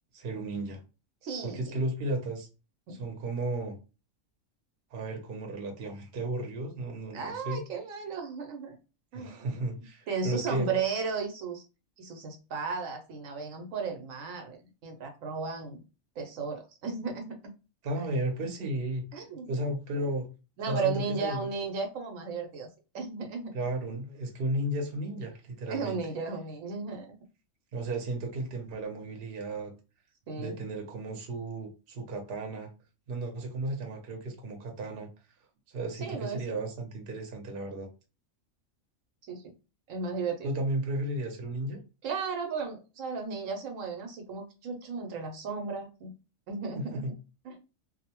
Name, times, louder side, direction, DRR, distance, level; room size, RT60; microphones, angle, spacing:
voice 1, 0.1-0.8 1.4-2.5 2.9-3.8 4.9-7.6 9.1-10.8 17.8-19.0 19.5-20.3 20.7-21.5 23.5-26.0 27.7-29.7 30.4-32.7 33.1-35.1 35.7-37.9 40.4-41.8 46.9-47.1, right 1 dB, 55° right, 0.8 m, -34 dB
voice 2, 1.2-1.6 2.9-3.0 7.1-8.8 9.1-9.7 10.1-11.6 12.0-15.8 16.2-17.4 19.1-19.6 20.6-22.7 22.9-23.6 25.7-27.2 30.3-30.5 36.0-36.6 39.2-39.4 39.9-40.5 42.0-46.1 46.5-47.0 47.4-47.6, right 5 dB, 80° right, 1.0 m, -35 dB
2.6 x 2.0 x 2.8 m
omnidirectional pair, 1.4 m